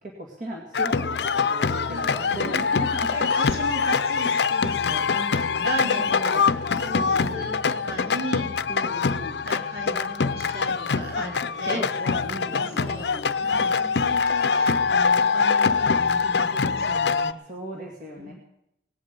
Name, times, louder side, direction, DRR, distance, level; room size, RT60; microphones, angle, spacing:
voice 1, 0.0-3.3 5.2-5.4 5.8-6.5 6.9-7.5 8.7-9.5 11.1-11.3 11.6-13.4 17.5-18.3, right 1 dB, 45° right, -1 dB, 2.2 m, -37 dB
sound 1, 0.7-17.3, left 5 dB, 70° left, 0.6 m, -24 dB
voice 2, 1.9-2.7 3.1-8.6 9.4-11.8 12.5-17.4 18.2-18.3, right 1 dB, 65° right, 1 dB, 3.3 m, -36 dB
18.5 x 8.1 x 8.4 m, 0.81 s
head